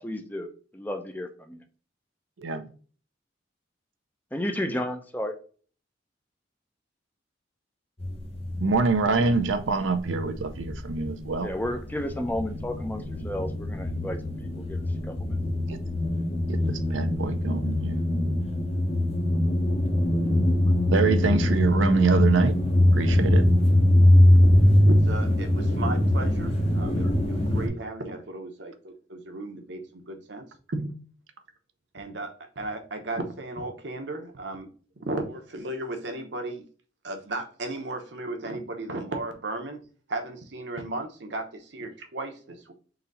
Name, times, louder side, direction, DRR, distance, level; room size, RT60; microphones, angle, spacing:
voice 1, 0.0-1.6 4.3-5.3 11.4-14.2 14.6-15.2, left 1 dB, 10° left, 0.6 m, -32 dB
voice 2, 2.4-2.7 8.6-11.5 15.7-15.8 16.5-18.0 20.9-22.6 22.9-23.5, right 4 dB, 85° right, 0.6 m, -25 dB
sound 1, 8.0-9.6 9.9-27.7, left 1 dB, 30° left, 0.9 m, -23 dB
voice 3, 24.9-30.9 31.9-34.7 35.1-36.7 37.0-39.8 40.1-42.7, right 2 dB, 65° right, 0.9 m, -35 dB
3.9 x 2.8 x 4.0 m
head